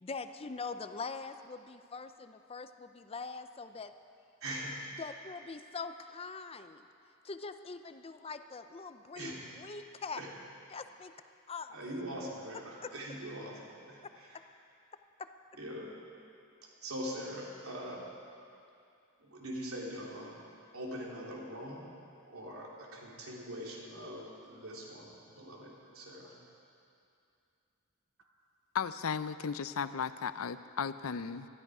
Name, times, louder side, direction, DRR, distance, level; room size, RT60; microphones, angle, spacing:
voice 1, 0.0-3.9 5.0-6.9 7.2-10.2 10.7-11.1 11.5-11.8 12.8-12.9 14.3-14.4 15.2-15.3, left 4 dB, 25° left, 10 dB, 0.5 m, -43 dB
voice 2, 4.4-4.7 9.1-9.4 10.1-10.3 11.7-14.4 15.6-15.9 16.8-18.0 19.2-20.4 20.7-21.9 22.3-26.3, equal, 85° right, -3 dB, 3.2 m, -42 dB
voice 3, 28.7-31.5, left 6 dB, 85° left, 13 dB, 0.5 m, -35 dB
20.0 x 13.5 x 4.9 m, 2.5 s
head